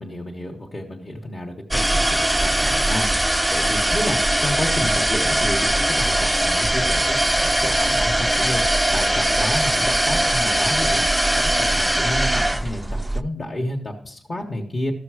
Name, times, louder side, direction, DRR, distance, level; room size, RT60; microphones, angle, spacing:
voice 1, 0.0-12.8 13.1-14.9, left 1 dB, 30° left, -1 dB, 1.1 m, -31 dB
sound 1, 1.7-13.2, right 1 dB, 5° right, 0.3 m, -20 dB
13.0 x 6.8 x 4.8 m, 0.63 s
wide cardioid pair, 120°, 0 cm